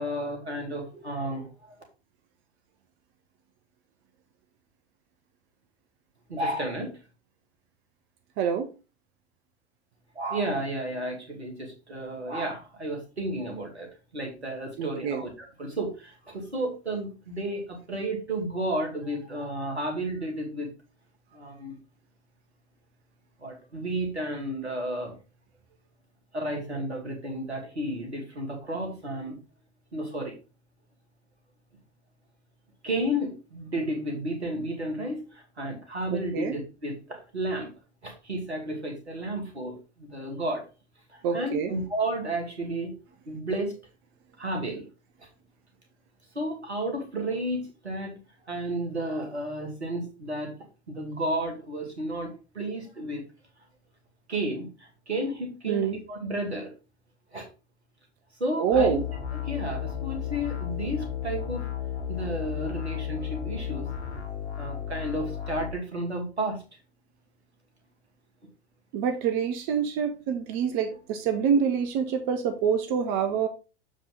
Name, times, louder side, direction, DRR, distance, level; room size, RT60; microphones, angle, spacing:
voice 1, 0.0-1.5 6.3-6.9 10.2-13.9 14.1-20.7 21.3-21.8 23.4-25.2 26.3-29.4 29.9-30.3 32.8-37.7 38.0-40.6 41.1-42.9 43.3-43.8 44.4-44.9 46.3-48.2 48.5-50.5 50.9-53.2 54.3-56.7 57.3-57.5 58.4-59.0 59.5-61.7 62.1-63.9 64.6-66.6, right 1 dB, 80° right, 2 dB, 2.3 m, -32 dB
voice 2, 8.4-8.7 14.8-15.2 36.1-36.5 41.2-41.7 55.7-56.0 58.6-59.0 68.9-73.5, right 7 dB, 40° right, 7 dB, 0.9 m, -26 dB
sound 1, 58.7-65.7, left 9 dB, 75° left, 1.2 m, -33 dB
7.1 x 5.0 x 3.8 m, 0.32 s
figure-of-eight pair, 85°, 33 cm